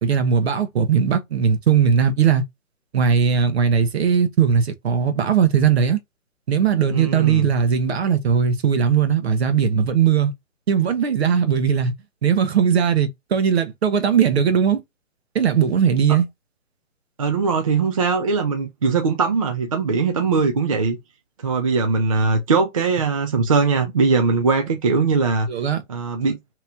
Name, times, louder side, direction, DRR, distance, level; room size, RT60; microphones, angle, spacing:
voice 1, 0.0-2.4 2.9-6.0 6.5-10.3 10.7-11.9 12.2-14.8 15.3-16.3 25.5-25.8, right 7 dB, 55° right, 1.1 m, -19 dB
voice 2, 6.9-7.5 17.2-21.0 21.4-25.5 25.9-26.4, right 4 dB, 30° right, 0.4 m, -20 dB
3.0 x 3.0 x 3.5 m
hypercardioid pair, 150°, 39 cm